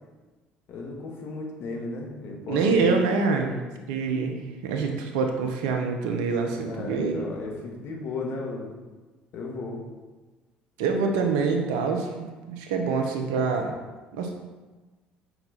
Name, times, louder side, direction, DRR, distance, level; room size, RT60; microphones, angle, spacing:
voice 1, 0.7-2.8 6.6-8.7 9.3-9.8, left 3 dB, 60° left, -1 dB, 2.2 m, -35 dB
voice 2, 2.5-3.6 3.9-7.3 10.8-12.1 12.5-13.7 14.1-14.3, right 4 dB, 75° right, 4 dB, 1.3 m, -25 dB
8.7 x 6.0 x 4.2 m, 1.2 s
hypercardioid pair, 60°, 5 cm